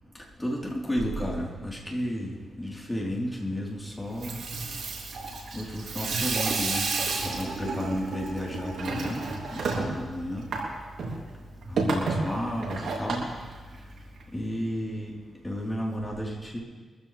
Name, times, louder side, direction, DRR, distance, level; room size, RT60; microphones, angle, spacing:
voice 1, 0.4-4.4 5.5-6.9 7.2-9.2 9.5-10.4 11.7-13.3 14.3-15.1 15.4-16.6, equal, 15° left, -4 dB, 4.3 m, -32 dB
Water tap faucet / Sink (filling or washing), 4.0-14.2, right 3 dB, 75° right, 3.3 m, -32 dB
23.5 x 14.5 x 3.6 m, 1.4 s
cardioid pair, 75°, 0 cm